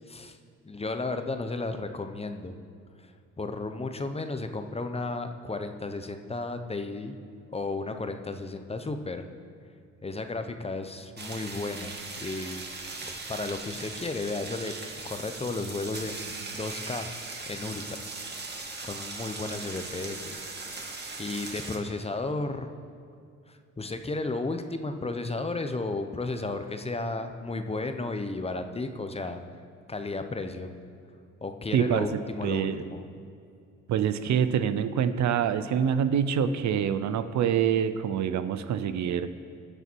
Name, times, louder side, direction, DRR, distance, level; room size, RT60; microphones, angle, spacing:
voice 1, 0.1-0.4 0.6-2.5 3.0-3.1 3.4-7.1 7.5-9.2 10.0-12.7 12.9-14.7 15.0-17.1 17.5-18.1 18.8-20.4 21.2-22.7 23.5-29.4 29.9-30.7 31.4-33.0, left 3 dB, 20° left, 7 dB, 0.9 m, -33 dB
sound 1, 11.2-21.8, right 3 dB, 35° right, 1.9 m, -39 dB
voice 2, 31.7-32.1 32.4-32.9 33.9-39.3, right 8 dB, 70° right, 11 dB, 0.7 m, -26 dB
20.0 x 6.8 x 4.6 m, 2.4 s
cardioid pair, 90°, 30 cm